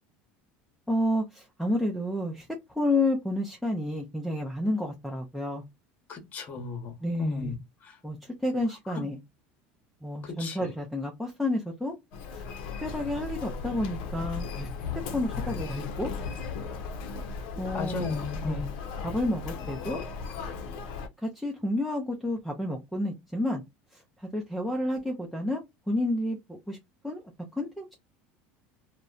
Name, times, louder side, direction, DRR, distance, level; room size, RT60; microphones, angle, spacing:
voice 1, 0.9-2.5 2.8-5.6 7.0-7.6 8.0-8.2 8.4-9.2 10.0-11.9 12.8-14.7 15.1-16.1 17.6-18.0 18.4-18.6 19.0-20.0 21.2-23.6 24.3-25.6 25.9-26.8 27.0-27.2 27.6-27.9, left 1 dB, ahead, 0.4 m, -30 dB
voice 2, 6.1-7.5 7.9-8.0 10.2-10.7 17.7-18.7, left 4 dB, 30° left, 0.9 m, -35 dB
Human voice, 12.1-21.1, left 5 dB, 75° left, 0.5 m, -36 dB
2.7 x 2.1 x 2.3 m
cardioid pair, 150°, 5 cm